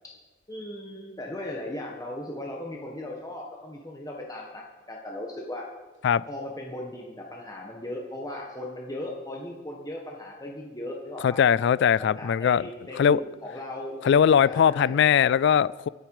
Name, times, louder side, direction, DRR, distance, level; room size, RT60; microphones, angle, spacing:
voice 1, 0.5-5.7 6.3-11.4 12.0-14.0 14.4-14.9, left 1 dB, 20° left, -1 dB, 1.6 m, -37 dB
voice 2, 11.2-12.7 13.0-13.2 14.0-15.9, left 8 dB, 65° left, 20 dB, 0.3 m, -20 dB
23.5 x 9.3 x 4.9 m, 1.3 s
head